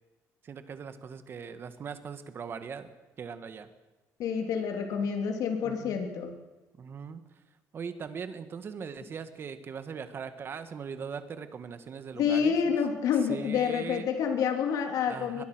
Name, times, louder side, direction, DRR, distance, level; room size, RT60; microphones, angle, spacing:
voice 1, 0.4-2.9 3.2-3.7 5.6-6.1 6.8-7.2 7.7-12.8 13.3-14.1 15.1-15.4, right 6 dB, 35° right, 10 dB, 1.8 m, -40 dB
voice 2, 4.2-6.3 12.1-15.4, left 7 dB, 70° left, 4 dB, 3.3 m, -28 dB
22.5 x 21.0 x 6.3 m, 1.1 s
cardioid pair, 140°, 6 cm